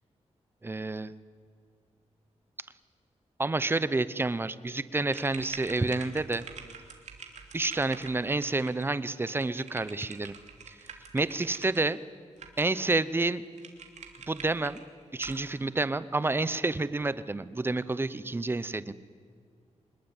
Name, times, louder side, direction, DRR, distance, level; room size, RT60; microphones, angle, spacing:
voice 1, 0.6-1.1 3.4-6.5 7.5-10.3 10.7-10.8 11.1-12.0 12.6-13.4 14.3-14.8 15.1-18.9, right 2 dB, 20° right, 16 dB, 0.8 m, -29 dB
sound 1, 5.1-11.8 12.4-12.9 13.2-13.3 13.6-14.8 15.2-15.4, right 6 dB, 75° right, 2.9 m, -46 dB
25.5 x 20.5 x 9.0 m, 2.1 s
wide cardioid pair, 140°, 12 cm